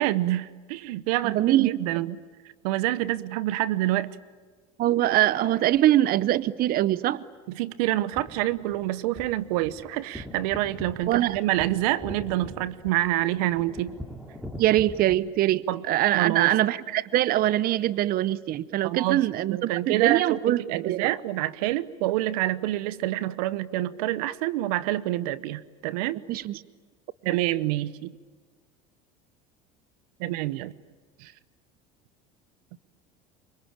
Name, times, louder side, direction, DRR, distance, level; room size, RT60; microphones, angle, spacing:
voice 1, 0.0-2.2 2.6-4.2 7.5-14.0 15.7-15.8 16.1-16.5 18.8-26.2 27.2-28.2 30.2-30.7 31.2-31.3, right 15 dB, 80° right, 18 dB, 0.9 m, -27 dB
voice 2, 1.3-1.8 4.8-7.2 11.1-11.4 14.6-21.1 26.3-26.6, right 13 dB, 50° right, 18 dB, 0.8 m, -23 dB
sound 1, 7.9-15.1, equal, 5° right, 4.3 m, -42 dB
27.0 x 24.5 x 8.9 m, 1.5 s
supercardioid pair, 90°, 19 cm